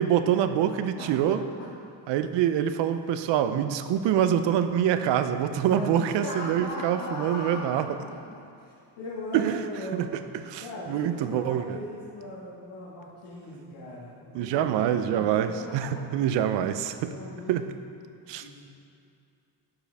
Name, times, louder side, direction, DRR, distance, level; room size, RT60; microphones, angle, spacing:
voice 1, 0.0-1.4 2.1-7.9 9.3-9.6 9.9-10.1 10.5-10.6 10.9-11.8 14.3-17.1 17.5-17.7 18.3-18.5, right 10 dB, 85° right, 10 dB, 0.6 m, -25 dB
voice 2, 1.0-1.7 2.6-2.9 5.7-10.1 10.6-16.0 17.0-17.6 18.4-18.6, left 1 dB, 80° left, -9 dB, 1.8 m, -39 dB
11.5 x 4.8 x 3.4 m, 2.6 s
cardioid pair, 160°, 42 cm